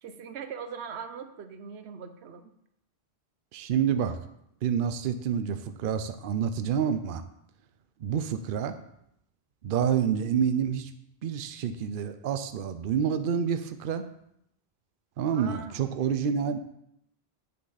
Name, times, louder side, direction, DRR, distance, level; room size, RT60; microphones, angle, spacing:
voice 1, 0.0-2.5 15.3-15.8, right 6 dB, 90° right, 9 dB, 1.0 m, -40 dB
voice 2, 3.5-4.2 4.6-7.2 8.0-8.8 9.6-10.9 11.2-14.0 15.2-16.6, right 8 dB, 60° right, 9 dB, 0.7 m, -28 dB
7.5 x 6.8 x 4.0 m, 0.77 s
omnidirectional pair, 1.1 m